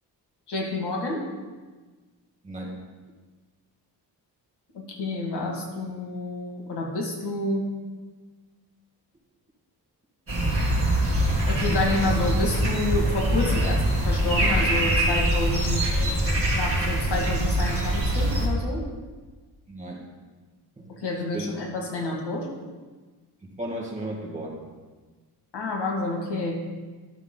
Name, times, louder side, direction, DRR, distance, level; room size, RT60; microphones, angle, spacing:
voice 1, 0.5-1.3 4.7-7.7 11.5-15.9 16.5-18.8 20.9-22.5 25.5-26.6, left 2 dB, 80° left, 0 dB, 2.0 m, -29 dB
voice 2, 2.4-2.8 19.7-20.1 20.8-20.9 21.3-21.5 23.4-24.7, right 1 dB, 20° right, -3 dB, 1.7 m, -35 dB
sound 1, 10.3-18.5, right 1 dB, 35° right, 2.0 m, -23 dB
12.0 x 6.3 x 3.8 m, 1.3 s
wide cardioid pair, 165°, 40 cm